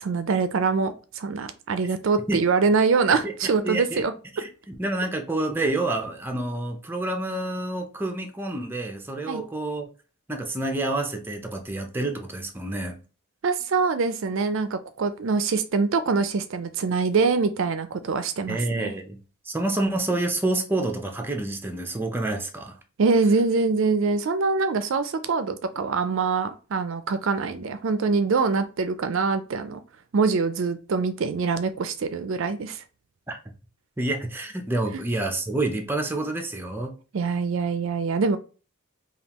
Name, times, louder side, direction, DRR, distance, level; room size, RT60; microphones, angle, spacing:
voice 1, 0.0-4.1 9.3-9.4 13.4-18.9 23.0-29.8 30.1-32.8 37.1-38.4, right 4 dB, 60° right, 0.4 m, -24 dB
voice 2, 3.6-4.0 4.3-9.9 10.3-13.0 18.5-19.2 19.5-22.8 33.3-33.4 34.0-36.9, right 2 dB, 10° right, 0.6 m, -28 dB
5.3 x 2.4 x 2.9 m
head